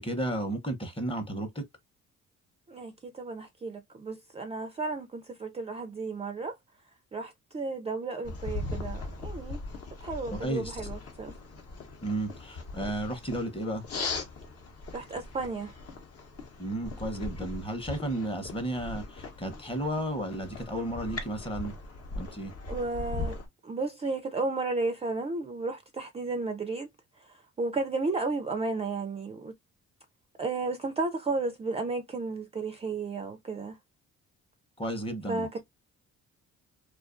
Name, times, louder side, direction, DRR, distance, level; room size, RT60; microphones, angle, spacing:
voice 1, 0.0-1.6 10.3-10.8 12.0-13.8 16.6-21.7 22.1-22.5 34.8-35.6, right 1 dB, 20° left, 0.8 m, -33 dB
voice 2, 2.7-6.6 7.1-9.6 10.0-11.3 14.9-15.7 22.7-23.4 23.6-26.9 27.2-29.5 30.4-33.8 35.3-35.6, right 3 dB, 20° right, 0.4 m, -33 dB
sound 1, 8.2-23.5, left 3 dB, 55° left, 0.8 m, -39 dB
2.4 x 2.3 x 2.4 m
cardioid pair, 90°, 30 cm